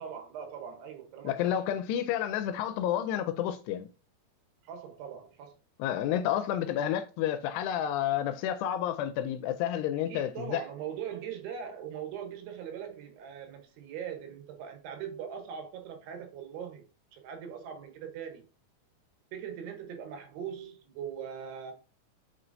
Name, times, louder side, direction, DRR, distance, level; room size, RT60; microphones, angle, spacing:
voice 1, 0.0-1.6 4.6-5.6 10.1-16.9 17.1-18.5 19.3-21.7, right 8 dB, 80° right, 3.1 m, -41 dB
voice 2, 1.2-3.9 5.8-10.6, left 10 dB, 85° left, 2.6 m, -30 dB
8.4 x 4.3 x 2.6 m
omnidirectional pair, 4.8 m